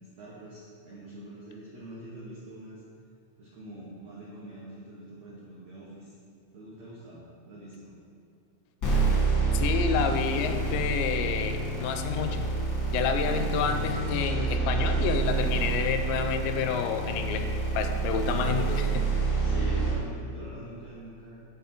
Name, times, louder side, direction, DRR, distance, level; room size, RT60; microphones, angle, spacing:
voice 1, 0.0-2.8 3.4-6.1 6.5-8.0 19.4-21.4, right 1 dB, 85° right, -8 dB, 1.5 m, -44 dB
sound 1, 8.8-19.9, right 3 dB, 65° left, 0.9 m, -27 dB
voice 2, 9.5-12.5 12.9-17.5 17.8-19.0, left 7 dB, 85° left, 6 dB, 2.8 m, -29 dB
7.4 x 4.0 x 5.8 m, 2.5 s
omnidirectional pair, 5.0 m